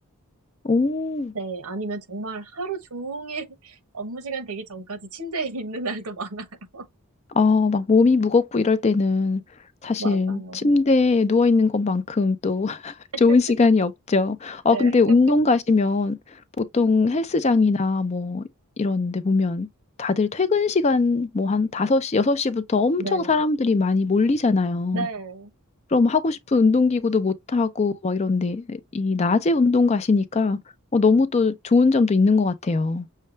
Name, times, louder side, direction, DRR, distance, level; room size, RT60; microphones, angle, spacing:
voice 1, 0.6-1.3 7.3-9.4 9.8-12.9 13.2-16.2 16.6-18.5 18.8-19.7 20.0-25.1 25.9-30.6 30.9-33.1, left 3 dB, 30° left, 0.4 m, -20 dB
voice 2, 1.3-6.5 6.7-6.9 10.0-10.7 13.3-13.4 14.7-15.0 23.0-23.3 24.9-25.5, right 3 dB, 80° right, 1.0 m, -32 dB
6.5 x 2.3 x 3.2 m
head